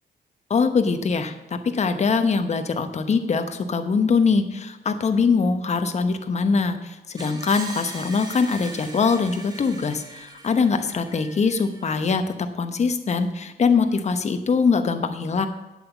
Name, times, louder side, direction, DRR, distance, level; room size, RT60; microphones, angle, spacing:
voice 1, 0.5-12.2 12.5-15.5, left 5 dB, 40° left, 8 dB, 1.0 m, -22 dB
Screech, 7.2-12.1, right 2 dB, 20° right, 1.8 m, -40 dB
9.0 x 7.9 x 7.1 m, 1.0 s
cardioid pair, 115°, 18 cm